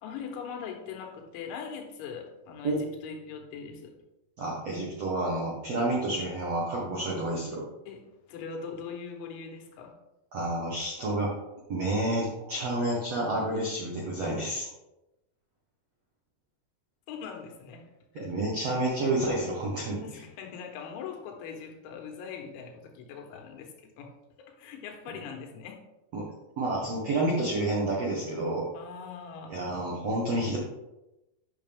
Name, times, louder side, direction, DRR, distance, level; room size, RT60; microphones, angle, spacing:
voice 1, 0.0-4.0 7.9-10.0 17.1-18.3 20.0-24.1 24.4-25.8 28.7-29.6, left 6 dB, 85° left, 3 dB, 3.5 m, -41 dB
voice 2, 4.4-7.6 10.3-11.3 11.7-14.7 18.2-20.2 26.1-26.2 26.6-28.6 29.5-30.6, right 1 dB, 75° right, -4 dB, 1.5 m, -29 dB
9.1 x 6.5 x 3.5 m, 0.95 s
omnidirectional pair, 5.2 m